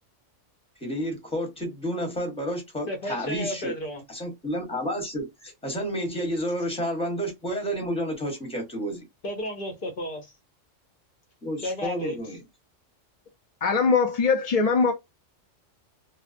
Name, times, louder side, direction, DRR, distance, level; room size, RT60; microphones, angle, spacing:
voice 1, 0.8-3.7 4.1-9.0 11.4-12.4, equal, 5° left, 0.9 m, -30 dB
voice 2, 2.9-4.0 9.2-10.3 11.6-12.2, equal, 50° left, 0.8 m, -32 dB
voice 3, 13.6-14.9, left 5 dB, 75° left, 0.3 m, -21 dB
2.7 x 2.0 x 2.5 m
omnidirectional pair, 1.3 m